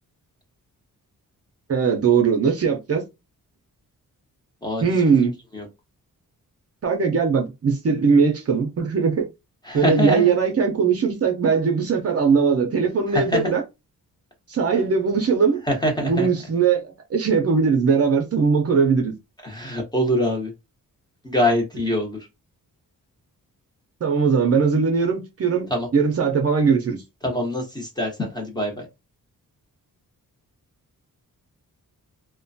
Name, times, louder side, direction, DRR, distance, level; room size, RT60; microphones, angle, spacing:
voice 1, 1.7-3.0 4.8-5.3 6.8-9.3 9.7-13.6 14.5-15.6 16.0-19.1 24.0-27.0, right 5 dB, 45° right, 0.6 m, -20 dB
voice 2, 9.7-10.3 13.1-13.5 15.7-16.3 19.4-20.5 21.2-22.2 25.7-25.9 27.2-28.9, left 1 dB, 10° left, 0.8 m, -24 dB
2.9 x 2.2 x 2.6 m
wide cardioid pair, 165°, 35 cm